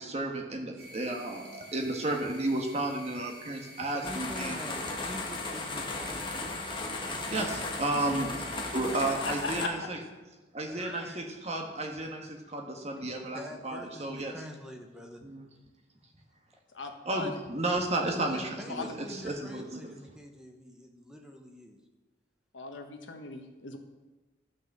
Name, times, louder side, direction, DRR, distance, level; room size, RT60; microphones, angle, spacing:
voice 1, 0.0-4.6 7.3-8.3 8.7-10.0 10.5-14.3 15.2-15.5 17.0-19.9, right 2 dB, 35° right, 1 dB, 1.5 m, -33 dB
sound 1, 0.8-9.1, left 1 dB, 50° right, 2.0 m, -50 dB
voice 2, 3.8-6.7 8.8-9.4 10.6-11.3 13.2-15.2 18.1-21.8, left 1 dB, 5° right, 3 dB, 1.0 m, -45 dB
sound 2, 4.0-9.7, left 2 dB, 25° left, 1.2 m, -36 dB
voice 3, 16.7-17.3 18.7-18.9 22.5-23.8, left 3 dB, 70° left, 5 dB, 1.3 m, -38 dB
12.5 x 6.2 x 6.6 m, 1.2 s
head